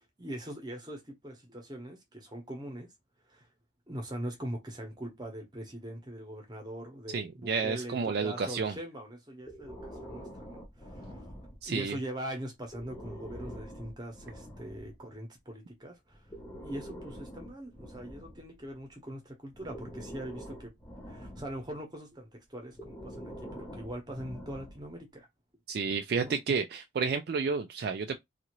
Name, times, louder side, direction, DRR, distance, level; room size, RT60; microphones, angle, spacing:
voice 1, 0.0-2.9 3.3-3.5 3.9-10.6 11.7-16.2 16.6-20.7 21.1-25.3 26.2-26.4, right 1 dB, 20° right, 0.8 m, -42 dB
voice 2, 7.1-8.7 11.6-12.0 25.7-28.2, right 5 dB, 55° right, 0.3 m, -31 dB
Breathing, 9.4-11.9 12.6-15.0 16.1-18.9 19.5-21.8 22.7-25.0, equal, 15° left, 0.6 m, -46 dB
2.6 x 2.4 x 2.9 m
head